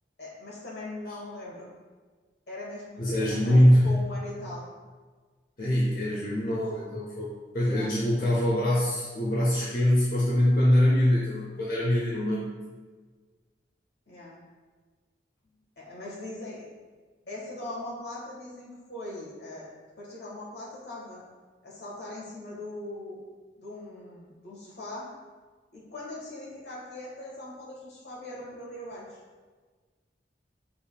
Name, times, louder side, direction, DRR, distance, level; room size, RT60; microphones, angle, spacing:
voice 1, 0.2-1.7 2.5-4.6 7.6-7.9 14.1-14.4 15.8-16.7 17.2-19.7 20.0-21.2 21.6-23.2 23.6-25.1 25.7-29.2, left 1 dB, 70° left, -4 dB, 1.4 m, -40 dB
voice 2, 3.0-4.0 5.6-12.5, left 1 dB, 50° left, -7 dB, 0.7 m, -23 dB
6.7 x 3.5 x 2.3 m, 1.4 s
head